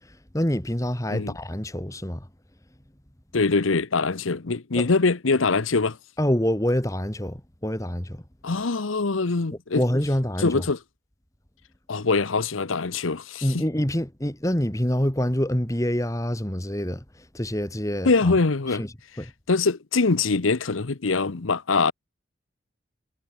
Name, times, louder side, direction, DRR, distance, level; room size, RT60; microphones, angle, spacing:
voice 1, 0.3-2.3 4.8-4.9 6.2-8.2 9.7-10.7 13.4-17.0 17.3-18.4 18.8-18.9 19.2-19.3, equal, 15° left, 1.8 m, -26 dB
voice 2, 3.3-6.0 8.4-9.8 10.4-10.8 11.9-13.6 18.0-18.8 19.5-21.9, left 4 dB, 90° left, 0.9 m, -23 dB
head